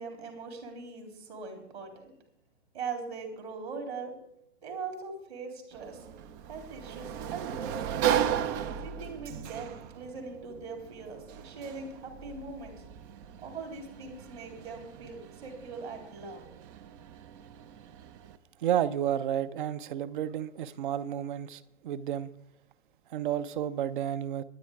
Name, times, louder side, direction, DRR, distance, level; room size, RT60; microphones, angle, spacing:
voice 1, 0.0-2.1 2.7-4.1 4.6-6.0 6.5-8.1 8.8-12.8 13.4-16.5, right 4 dB, 65° right, 3.6 m, -41 dB
Sliding door, 5.7-18.4, right 9 dB, 20° right, 0.4 m, -36 dB
voice 2, 18.6-22.3 23.1-24.4, right 10 dB, 45° right, 0.8 m, -31 dB
23.5 x 8.9 x 3.6 m
figure-of-eight pair, 110°, 34 cm